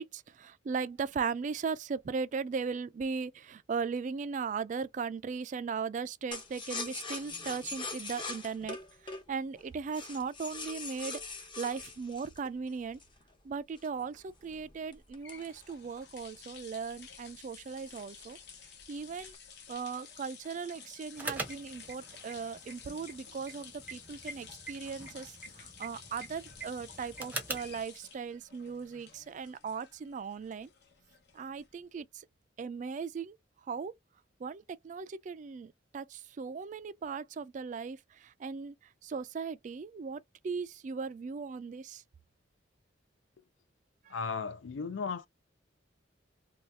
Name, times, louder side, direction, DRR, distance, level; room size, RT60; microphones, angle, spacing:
voice 1, 0.0-8.8 9.0-13.0 13.4-18.4 18.9-19.4 19.7-30.7 31.3-32.2 32.6-33.4 33.7-33.9 34.4-38.7 39.0-42.0 44.1-44.2, right 5 dB, 45° right, 0.3 m, -38 dB
sound 1, 6.3-13.2 13.8-16.2 16.6-16.7 17.0-17.3 17.8-18.5 18.8-19.3, left 3 dB, 25° left, 0.7 m, -42 dB
sound 2, 14.9-31.9, left 6 dB, 65° left, 0.9 m, -53 dB
sound 3, 21.2-27.8, right 2 dB, 10° right, 0.6 m, -44 dB
voice 2, 44.1-45.3, left 5 dB, 90° left, 0.4 m, -35 dB
2.7 x 2.3 x 3.2 m
head